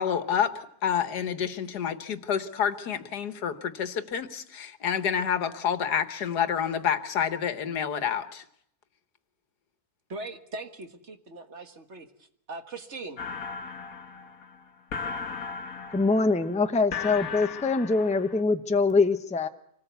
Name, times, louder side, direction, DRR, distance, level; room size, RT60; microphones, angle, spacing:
voice 1, 0.0-8.4, left 8 dB, 90° left, 11 dB, 1.8 m, -28 dB
voice 2, 10.1-12.1 12.5-13.2, right 3 dB, 45° right, 8 dB, 1.7 m, -40 dB
sound 1, 13.2-18.4, left 6 dB, 65° left, 1.6 m, -37 dB
voice 3, 15.9-19.5, left 3 dB, 5° left, 8 dB, 0.7 m, -24 dB
26.0 x 18.5 x 8.2 m, 0.73 s
omnidirectional pair, 1.7 m